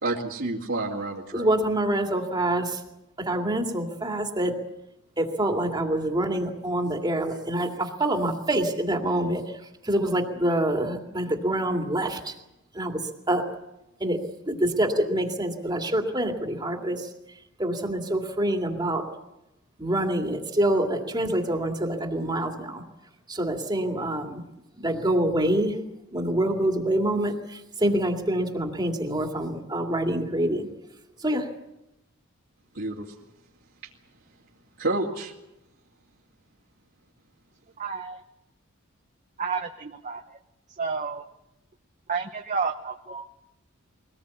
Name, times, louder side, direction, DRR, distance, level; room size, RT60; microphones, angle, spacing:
voice 1, 0.0-1.5 32.7-33.1 34.8-35.3, right 2 dB, 60° right, -5 dB, 2.5 m, -29 dB
voice 2, 1.3-2.8 3.2-4.6 5.2-12.4 12.7-13.4 14.0-14.2 14.5-17.1 17.6-19.0 19.8-22.8 23.3-24.4 24.8-25.8 26.1-30.7 31.2-31.5, right 1 dB, 20° right, 3 dB, 2.3 m, -26 dB
voice 3, 37.8-38.2 39.4-40.2 40.8-41.2 42.1-43.3, right 5 dB, 35° right, 5 dB, 0.9 m, -30 dB
23.0 x 19.0 x 8.4 m, 0.90 s
head